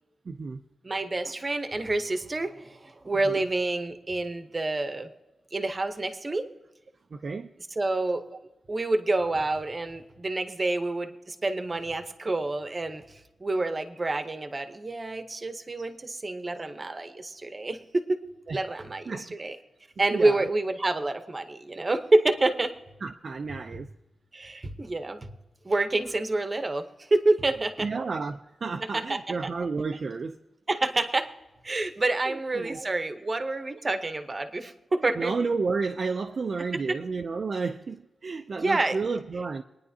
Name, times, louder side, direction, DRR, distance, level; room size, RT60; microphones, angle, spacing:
voice 1, 0.3-0.6 3.2-3.5 7.1-7.5 8.3-8.4 15.8-15.9 18.5-18.6 19.1-19.4 20.1-20.5 23.0-23.9 27.8-30.4 32.3-33.0 35.2-39.6, right 4 dB, 40° right, 0.4 m, -32 dB
voice 2, 0.8-5.1 5.5-6.5 7.8-8.2 8.7-18.2 18.5-19.6 20.0-22.7 24.3-25.3 25.6-27.9 28.8-29.2 30.7-31.3 31.6-35.3 36.7-37.0 38.5-39.0, right 2 dB, 25° right, 0.8 m, -28 dB
23.5 x 9.9 x 2.7 m
wide cardioid pair, 180°, 0 cm